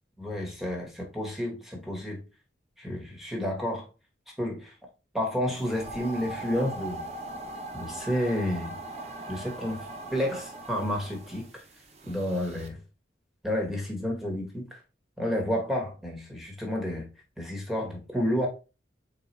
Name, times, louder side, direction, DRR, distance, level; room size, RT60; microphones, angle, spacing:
voice 1, 0.2-2.2 2.8-3.9 4.4-4.7 5.1-7.0 7.7-8.7 9.3-11.6 12.0-12.8 13.4-14.8 15.2-17.1 17.4-18.5, equal, ahead, 1.0 m, -30 dB
sound 1, 5.6-12.7, right 2 dB, 35° right, 0.7 m, -40 dB
3.9 x 3.7 x 3.0 m
head